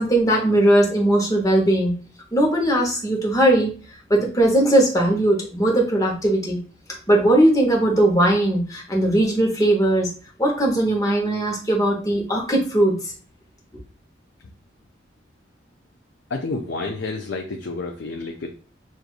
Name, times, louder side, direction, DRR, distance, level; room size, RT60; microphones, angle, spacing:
voice 1, 0.0-1.9 2.3-3.7 4.1-6.6 7.1-10.1 10.4-13.1, right 1 dB, 20° left, -1 dB, 1.0 m, -19 dB
voice 2, 16.3-18.5, left 3 dB, 75° left, 2 dB, 0.5 m, -29 dB
6.2 x 2.6 x 2.4 m, 0.39 s
head